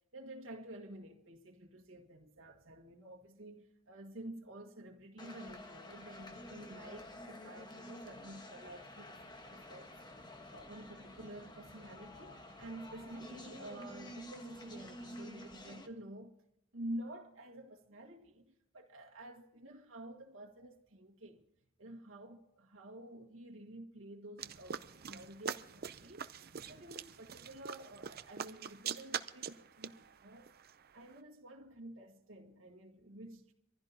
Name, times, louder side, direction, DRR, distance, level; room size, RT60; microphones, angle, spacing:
voice 1, 0.1-10.0 10.5-16.4 16.7-21.5 21.8-26.3 26.7-30.5 30.9-33.5, right 1 dB, 90° right, 1.8 m, -50 dB
sound 1, 5.2-15.9, left 1 dB, 20° left, 1.3 m, -50 dB
sound 2, 24.4-31.2, right 7 dB, 50° right, 0.6 m, -44 dB
25.5 x 15.5 x 2.8 m
head